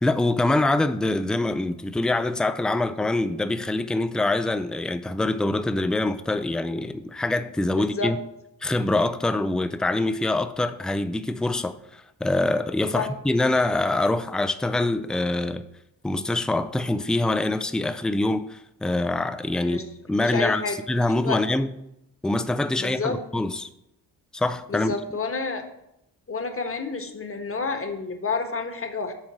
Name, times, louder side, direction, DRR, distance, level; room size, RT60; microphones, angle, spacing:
voice 1, 0.0-8.2 8.6-15.6 16.0-19.8 20.1-20.6 20.9-21.7 22.2-23.7 24.3-24.9, left 2 dB, ahead, 0.4 m, -24 dB
voice 2, 7.8-8.1 12.9-13.1 19.6-19.8 20.2-20.8 21.2-21.4 22.8-23.2 24.7-25.7 26.3-29.1, left 4 dB, 30° left, 1.3 m, -29 dB
7.3 x 3.8 x 6.1 m
supercardioid pair, 50°, 44 cm